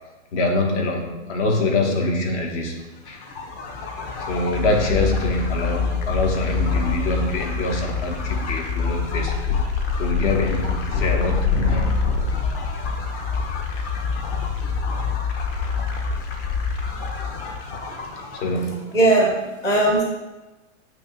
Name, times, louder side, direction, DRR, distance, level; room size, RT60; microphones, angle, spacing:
voice 1, 0.3-3.3 4.2-9.6 10.0-13.3 18.3-19.0, left 2 dB, 65° left, 2 dB, 1.6 m, -25 dB
sound 1, 3.1-18.7, left 5 dB, 45° left, 1.3 m, -26 dB
voice 2, 18.9-20.0, right 2 dB, 10° left, -1 dB, 0.5 m, -18 dB
8.7 x 3.1 x 5.3 m, 1.1 s
supercardioid pair, 160°, 38 cm